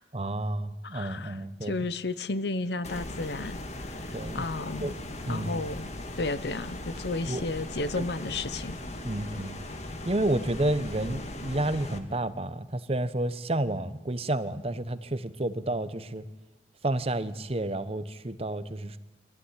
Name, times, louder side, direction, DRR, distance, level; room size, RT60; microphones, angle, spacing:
voice 1, 0.1-1.8 4.1-4.4 4.8-5.0 5.3-5.7 7.3-7.5 8.0-8.1 9.0-9.6 10.0-16.2 16.8-19.0, right 1 dB, 35° right, 12 dB, 0.9 m, -30 dB
voice 2, 0.8-3.6 4.3-4.9 5.3-5.9 6.2-8.8, left 3 dB, 70° left, 14 dB, 0.9 m, -33 dB
sound 1, 2.8-12.0, left 1 dB, 40° left, 1.8 m, -39 dB
23.0 x 14.5 x 9.8 m, 1.1 s
head